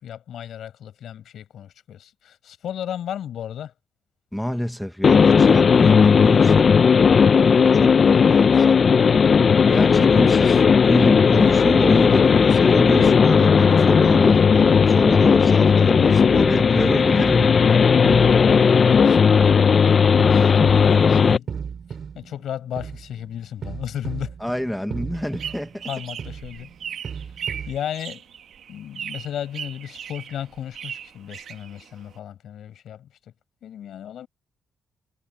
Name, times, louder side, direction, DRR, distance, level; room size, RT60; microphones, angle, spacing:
voice 1, 0.0-3.7 7.5-7.8 8.1-9.0 9.6-10.6 18.9-19.2 19.9-21.5 22.1-24.4 25.9-26.7 27.7-28.2 28.7-33.1 33.6-34.3, left 10 dB, 75° left, 6.8 m, -34 dB
voice 2, 4.3-6.7 7.6-8.8 9.7-17.6 24.4-25.9, equal, 5° left, 1.0 m, -27 dB
sound 1, 5.0-21.4, left 6 dB, 40° left, 0.5 m, -15 dB
sound 2, 14.6-15.4 15.9-27.8, right 6 dB, 50° right, 4.1 m, -37 dB
sound 3, 25.1-32.2, right 8 dB, 70° right, 1.1 m, -37 dB
wide cardioid pair, 150°, 0 cm